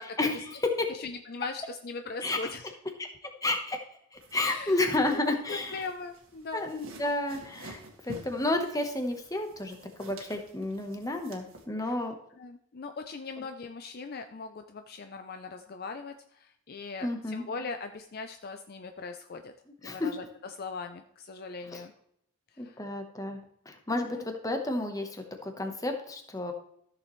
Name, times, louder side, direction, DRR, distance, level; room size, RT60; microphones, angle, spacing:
voice 1, 0.2-0.9 2.2-2.5 3.0-3.8 4.1-5.8 6.5-12.1 17.0-17.5 19.8-20.1 21.7-21.8 22.6-23.4 23.7-26.5, left 2 dB, 15° left, 4 dB, 1.0 m, -31 dB
voice 2, 0.9-2.6 4.5-4.8 5.1-5.2 5.5-6.7 11.8-12.0 12.4-19.5 19.8-21.9 22.5-23.0 24.0-24.3, left 4 dB, 45° left, 7 dB, 0.5 m, -40 dB
sound 1, 4.1-11.6, right 1 dB, 70° right, 1.8 m, -50 dB
14.0 x 6.8 x 3.1 m, 0.70 s
head